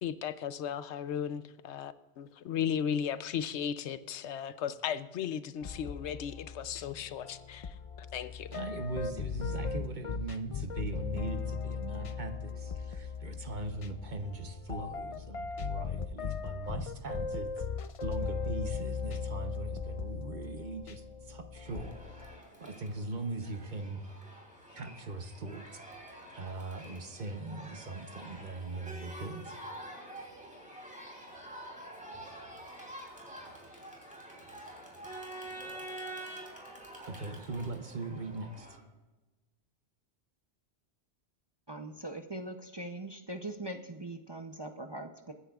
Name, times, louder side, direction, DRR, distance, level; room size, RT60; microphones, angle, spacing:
voice 1, 0.0-7.7 8.1-8.5, left 8 dB, 75° left, 13 dB, 0.9 m, -36 dB
sound 1, 5.6-22.4, left 5 dB, 50° left, 0.4 m, -38 dB
voice 2, 8.5-17.6 18.0-22.3 22.6-24.0 24.7-25.8 26.3-29.6 37.0-38.8, right 2 dB, 45° right, 6 dB, 0.9 m, -40 dB
Crowd, 21.6-38.8, right 1 dB, 5° right, 2.9 m, -47 dB
voice 3, 41.7-45.3, right 1 dB, 30° right, 4 dB, 0.6 m, -41 dB
23.5 x 9.8 x 2.4 m, 1.1 s
omnidirectional pair, 1.2 m